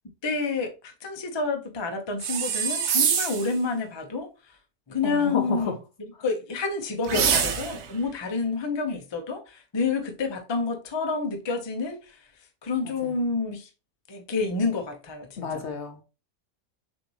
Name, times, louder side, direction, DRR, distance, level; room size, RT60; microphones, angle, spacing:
voice 1, 0.2-4.5 4.9-5.7 6.2-12.3 12.6-13.7 14.1-15.7, left 4 dB, 30° left, 0.5 m, -29 dB
sound 1, 2.2-3.5 7.0-7.9, right 7 dB, 60° right, 0.8 m, -25 dB
voice 2, 5.0-5.7 7.1-7.3 13.0-13.1 15.4-16.0, left 5 dB, 60° left, 0.8 m, -30 dB
6.4 x 2.7 x 3.0 m
omnidirectional pair, 1.6 m